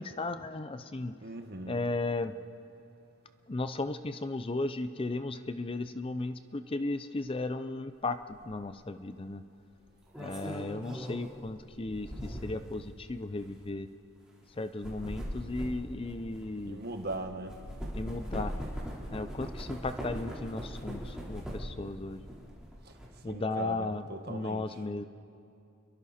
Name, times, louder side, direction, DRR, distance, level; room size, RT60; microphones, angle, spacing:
voice 1, 0.0-1.2 1.7-2.3 3.5-8.2 8.5-9.4 10.2-13.9 14.6-16.8 17.9-18.5 19.1-22.2 23.2-25.1, left 2 dB, 25° left, 11 dB, 0.5 m, -35 dB
voice 2, 1.2-1.8 16.7-17.6 22.8-22.9 23.3-24.7, right 2 dB, 50° right, 5 dB, 1.6 m, -39 dB
sound 1, 8.3-8.5 9.8-12.7 13.4-13.5 14.6-17.2 17.5-21.8 22.2-23.1, equal, 5° right, 3.9 m, -40 dB
29.5 x 22.5 x 4.3 m, 2.6 s
head